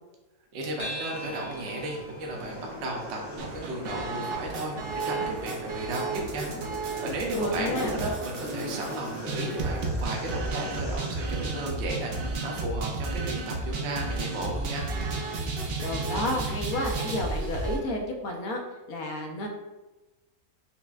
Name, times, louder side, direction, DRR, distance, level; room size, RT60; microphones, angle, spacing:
voice 1, 0.5-6.5 6.7-14.9, right 1 dB, 60° right, 0 dB, 0.8 m, -34 dB
sound 1, 0.8-5.5, equal, 25° left, 0.7 m, -44 dB
sound 2, 1.1-17.1, left 1 dB, 55° left, 1.0 m, -45 dB
sound 3, 3.4-17.8, right 3 dB, 85° right, 0.5 m, -32 dB
voice 2, 7.3-7.9 15.8-18.6 18.9-19.5, left 1 dB, 75° left, 2 dB, 1.0 m, -31 dB
5.7 x 2.1 x 2.3 m, 1.1 s
omnidirectional pair, 1.6 m